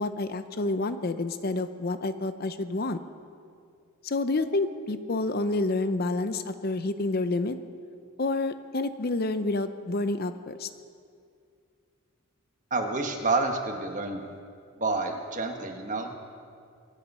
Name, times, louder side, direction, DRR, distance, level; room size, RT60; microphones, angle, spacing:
voice 1, 0.0-3.0 4.0-7.6 8.2-10.7, left 2 dB, 45° left, 11 dB, 0.5 m, -29 dB
voice 2, 12.7-14.2 14.8-16.2, right 3 dB, 35° right, 4 dB, 1.3 m, -29 dB
23.5 x 9.9 x 5.5 m, 2.3 s
head